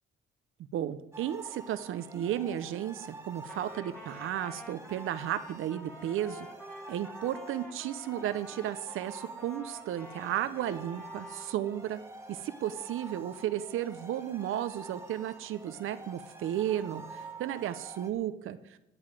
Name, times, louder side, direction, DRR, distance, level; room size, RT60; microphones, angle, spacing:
voice 1, 0.7-6.5 6.9-12.0 12.3-18.8, right 11 dB, 80° right, 12 dB, 0.8 m, -34 dB
sound 1, 1.1-18.1, right 2 dB, 10° right, 2.0 m, -48 dB
Trumpet, 3.5-11.6, left 1 dB, 10° left, 2.5 m, -49 dB
9.6 x 9.0 x 9.0 m, 0.86 s
cardioid pair, 100°, 21 cm